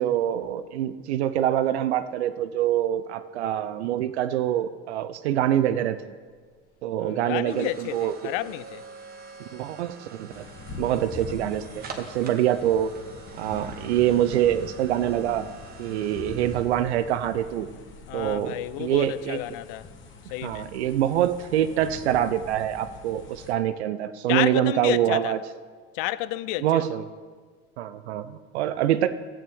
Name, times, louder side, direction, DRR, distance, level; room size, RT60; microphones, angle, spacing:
voice 1, 0.0-6.0 6.8-8.3 9.5-10.4 10.8-12.9 13.4-15.5 15.8-17.7 18.1-19.4 20.4-25.4 26.6-27.0 27.8-29.1, right 11 dB, 85° right, 0.6 m, -25 dB
sound 1, 6.2-19.0, right 5 dB, 30° right, 1.4 m, -47 dB
voice 2, 7.0-8.8 18.1-19.9 20.3-20.7 24.3-25.4 25.9-26.9, left 16 dB, 60° left, 0.5 m, -31 dB
sound 2, 10.3-23.5, left 3 dB, 40° left, 1.2 m, -43 dB
13.0 x 8.7 x 3.5 m
supercardioid pair, 105°, 32 cm